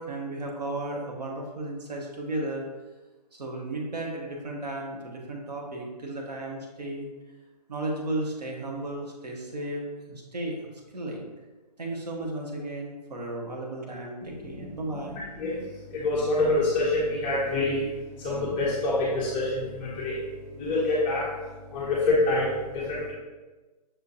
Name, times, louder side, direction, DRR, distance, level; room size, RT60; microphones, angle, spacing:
voice 1, 0.0-2.6 3.3-7.1 7.7-10.6 10.9-11.3 11.8-15.2, right 2 dB, 75° right, -1 dB, 1.1 m, -34 dB
voice 2, 15.9-17.9 18.2-20.2 20.5-21.3 21.7-23.1, left 2 dB, 15° left, -6 dB, 0.4 m, -26 dB
6.1 x 2.7 x 2.5 m, 1.2 s
figure-of-eight pair, 140°, 21 cm